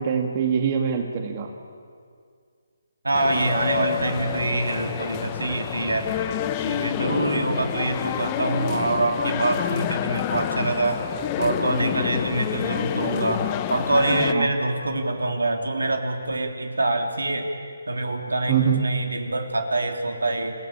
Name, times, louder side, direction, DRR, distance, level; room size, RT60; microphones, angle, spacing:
voice 1, 0.0-1.5 14.3-14.5 18.5-18.8, right 7 dB, 35° right, 4 dB, 2.1 m, -23 dB
voice 2, 3.0-11.0 11.4-17.5 17.9-20.5, right 2 dB, 85° right, 4 dB, 3.2 m, -25 dB
sound 1, 3.1-14.3, left 12 dB, 25° left, 1.0 m, -28 dB
28.0 x 16.0 x 8.9 m, 2.2 s
figure-of-eight pair, 150°, 0 cm